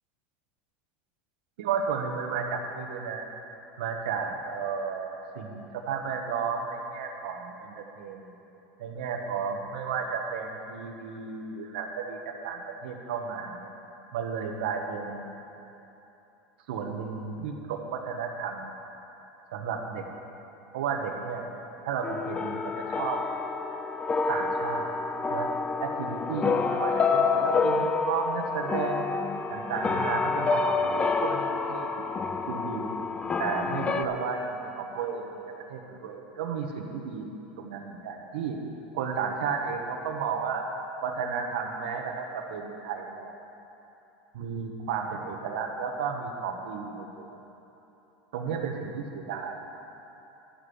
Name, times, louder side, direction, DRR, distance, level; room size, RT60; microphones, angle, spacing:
voice 1, 1.6-3.3 3.8-8.2 8.8-13.7 14.1-15.3 16.7-18.7 19.5-20.0 20.7-21.5 21.8-23.2 24.3-24.9 25.3-25.5 25.8-29.1 29.5-32.1 32.5-32.9 33.4-35.3 35.7-37.3 37.6-38.6 38.9-40.6 41.0-43.3 44.3-47.4 48.3-49.6, right 6 dB, 80° right, 3 dB, 1.4 m, -33 dB
sound 1, 22.0-34.0, left 4 dB, 20° left, 0.6 m, -28 dB
12.0 x 8.0 x 6.5 m, 3.0 s
supercardioid pair, 110°, 5 cm